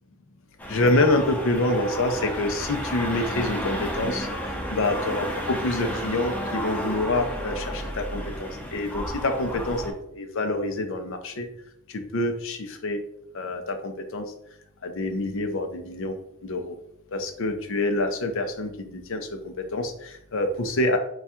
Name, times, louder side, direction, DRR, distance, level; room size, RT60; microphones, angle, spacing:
sound 1, 0.6-9.9, equal, 5° left, 0.6 m, -32 dB
voice 1, 0.7-4.3 4.7-11.5 11.9-13.0 13.3-14.2 14.8-16.2 16.4-16.8 17.1-21.0, left 2 dB, 60° left, 6 dB, 0.6 m, -26 dB
3.5 x 2.4 x 4.2 m, 0.74 s
head